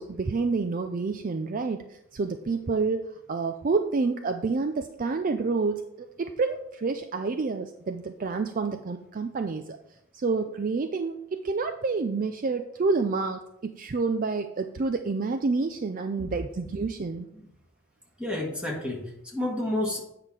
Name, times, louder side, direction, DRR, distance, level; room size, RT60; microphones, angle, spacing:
voice 1, 0.0-9.8 10.1-17.3, right 4 dB, 40° right, 7 dB, 0.4 m, -28 dB
voice 2, 18.2-20.0, left 1 dB, 5° right, -2 dB, 1.7 m, -30 dB
8.6 x 5.7 x 4.7 m, 0.81 s
head